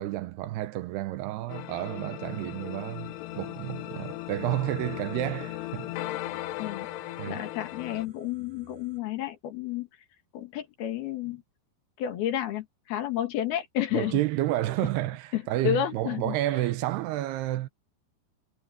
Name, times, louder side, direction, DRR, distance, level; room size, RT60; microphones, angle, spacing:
voice 1, 0.0-5.9 7.2-7.4 13.9-17.7, right 15 dB, 85° right, 2.8 m, -30 dB
sound 1, 1.5-8.1, left 16 dB, 90° left, 2.9 m, -37 dB
sound 2, 2.2-9.0, right 3 dB, 50° right, 6.2 m, -57 dB
voice 2, 7.3-9.9 10.3-11.4 12.0-14.2 15.3-16.4, left 11 dB, 70° left, 3.6 m, -31 dB
omnidirectional pair, 4.8 m